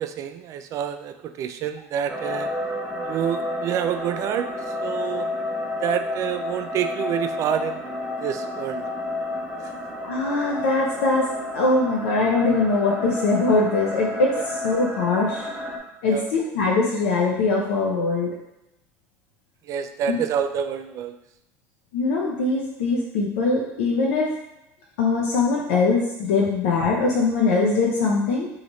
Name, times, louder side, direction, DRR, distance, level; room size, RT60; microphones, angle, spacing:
voice 1, 0.0-2.5 3.0-4.5 4.8-5.3 5.8-7.9 8.2-8.8 16.0-16.3 19.7-21.2, right 9 dB, 45° right, 9 dB, 0.3 m, -27 dB
sound 1, 2.1-15.8, left 2 dB, 15° right, 0.8 m, -31 dB
voice 2, 10.0-11.3 11.5-14.4 14.6-15.5 16.0-18.3 20.1-20.2 21.9-24.3 25.0-28.5, left 3 dB, 80° left, -3 dB, 0.6 m, -22 dB
3.0 x 2.4 x 4.1 m, 0.88 s
supercardioid pair, 95°, 7 cm